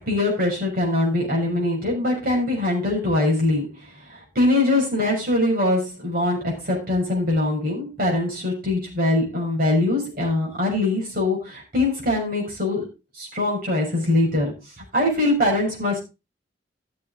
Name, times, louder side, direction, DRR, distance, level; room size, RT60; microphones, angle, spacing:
voice 1, 0.0-3.7 4.1-12.9 13.2-14.5 14.9-16.0, left 2 dB, 50° right, -2 dB, 6.3 m, -22 dB
13.0 x 7.6 x 3.9 m, 0.27 s
head